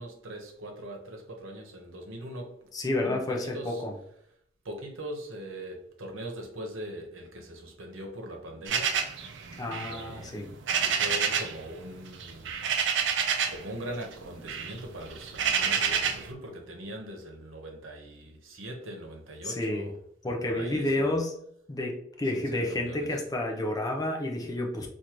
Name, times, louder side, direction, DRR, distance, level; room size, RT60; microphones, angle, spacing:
voice 1, 0.0-2.5 3.0-3.8 4.6-8.9 9.8-10.3 10.7-12.5 13.2-19.9 20.4-21.1 22.3-23.1, right 1 dB, 85° right, 2 dB, 0.9 m, -41 dB
voice 2, 2.7-4.0 9.6-10.5 19.4-19.9 20.2-21.3 21.7-24.9, left 1 dB, 20° left, 1 dB, 0.5 m, -30 dB
sound 1, 8.7-11.6 11.9-13.7 14.0-16.3, right 7 dB, 60° right, 0.4 m, -29 dB
3.7 x 2.5 x 2.9 m, 0.70 s
head